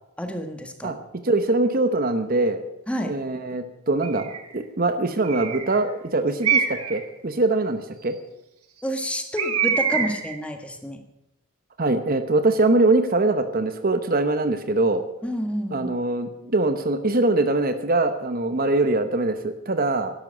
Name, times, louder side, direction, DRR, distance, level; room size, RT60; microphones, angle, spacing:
voice 1, 0.2-0.9 2.9-3.2 8.8-11.0 15.2-15.9, equal, 5° left, 5 dB, 1.5 m, -29 dB
voice 2, 1.2-2.6 3.0-8.2 11.8-15.0 15.7-20.1, right 2 dB, 40° right, 10 dB, 0.9 m, -23 dB
Bird, 4.0-4.5 5.2-5.8 6.4-7.0 9.4-10.4, right 7 dB, 80° right, 1.9 m, -25 dB
12.5 x 11.5 x 7.9 m, 0.88 s
head